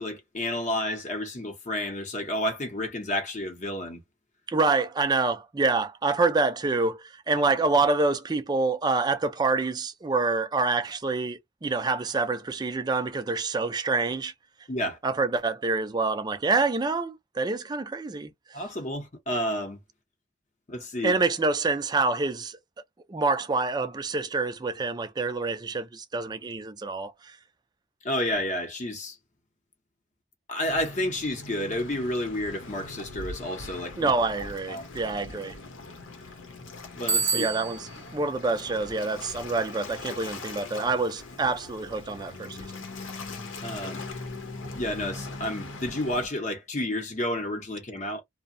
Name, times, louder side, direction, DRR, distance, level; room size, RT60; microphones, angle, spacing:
voice 1, 0.0-4.0 14.7-15.0 18.5-19.8 20.7-21.2 28.0-29.2 30.5-34.1 34.7-34.9 36.9-37.5 43.6-44.0 44.7-48.2, left 1 dB, 40° left, 0.7 m, -30 dB
voice 2, 4.5-14.3 15.0-18.3 21.0-22.6 23.1-27.1 34.0-35.5 37.3-42.7, right 3 dB, 20° right, 0.4 m, -27 dB
Waves surf, 30.7-46.3, left 3 dB, 80° left, 0.8 m, -41 dB
Bicycle bell, 37.1-38.0, right 5 dB, 75° right, 0.7 m, -27 dB
2.7 x 2.1 x 2.5 m
head